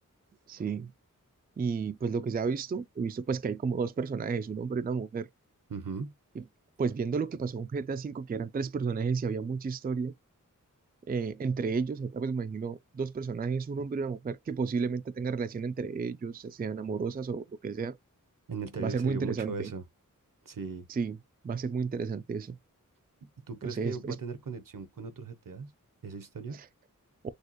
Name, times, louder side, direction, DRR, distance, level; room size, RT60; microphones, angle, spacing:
voice 1, 0.5-0.9 1.6-5.3 6.4-6.5 6.8-10.1 11.1-18.0 18.8-19.7 20.9-21.2 21.4-22.6 23.6-24.2 26.5-26.7, right 5 dB, 30° right, 0.4 m, -32 dB
voice 2, 5.7-6.1 18.5-19.8 20.5-20.9 23.5-25.7 26.0-26.6, right 4 dB, 80° right, 0.9 m, -38 dB
6.5 x 2.3 x 3.0 m
wide cardioid pair, 85°, 33 cm